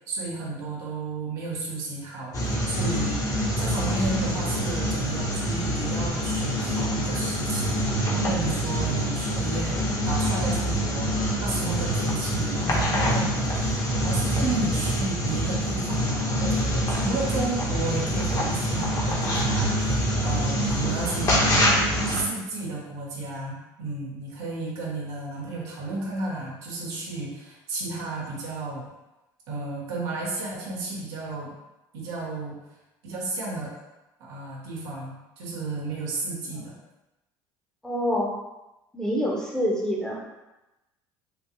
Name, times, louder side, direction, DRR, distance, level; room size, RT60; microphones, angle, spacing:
voice 1, 0.1-3.2 3.6-28.8 29.5-31.5 31.9-32.5 33.0-33.8 34.2-36.8, right 3 dB, 80° right, -4 dB, 1.0 m, -33 dB
sound 1, 2.3-22.2, equal, 30° left, 1.0 m, -25 dB
voice 2, 37.8-38.3 38.9-40.2, equal, 5° left, -3 dB, 0.9 m, -26 dB
3.7 x 2.3 x 2.9 m, 0.99 s
hypercardioid pair, 80°, 11 cm